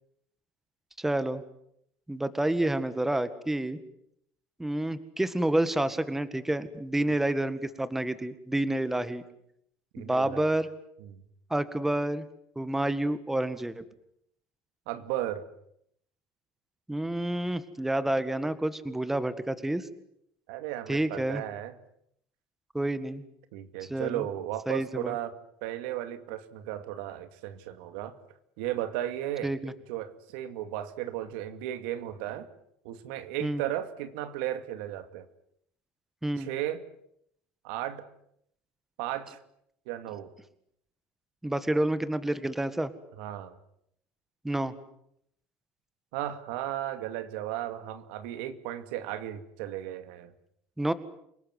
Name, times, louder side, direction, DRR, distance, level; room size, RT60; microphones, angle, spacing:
voice 1, 1.0-1.4 2.1-3.8 4.6-9.2 10.0-10.7 11.5-12.3 12.6-13.8 16.9-19.9 20.9-21.4 22.7-23.2 23.9-24.2 24.7-25.1 29.4-29.7 33.4-33.6 36.2-36.5 41.4-42.9 44.4-44.7 50.8-50.9, right 1 dB, 5° right, 13 dB, 1.8 m, -29 dB
voice 2, 9.9-10.5 11.0-11.2 14.9-15.5 20.5-21.7 23.5-28.2 28.6-29.5 29.9-32.5 32.8-35.3 36.4-36.8 37.6-38.1 39.0-39.4 39.9-40.3 43.1-43.6 46.1-50.3, right 12 dB, 85° right, 11 dB, 2.3 m, -35 dB
28.5 x 18.5 x 9.6 m, 0.72 s
cardioid pair, 130°, 6 cm